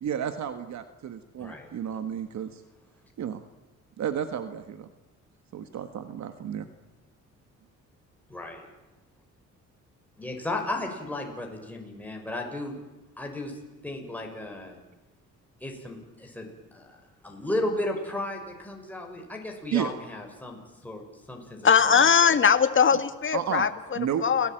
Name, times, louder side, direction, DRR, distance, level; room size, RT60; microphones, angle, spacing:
voice 1, 0.0-2.6 3.2-3.4 4.0-4.9 5.5-6.7 19.7-19.9 23.3-23.7 23.9-24.2, right 9 dB, 65° right, 9 dB, 1.6 m, -32 dB
voice 2, 1.4-1.7 8.3-8.7 10.2-12.8 13.2-14.8 15.6-17.0 17.2-21.0 21.3-22.3, left 1 dB, 5° left, 1 dB, 6.1 m, -34 dB
voice 3, 21.6-24.5, left 6 dB, 40° left, 10 dB, 2.1 m, -21 dB
29.5 x 18.5 x 9.1 m, 1.1 s
cardioid pair, 90°, 30 cm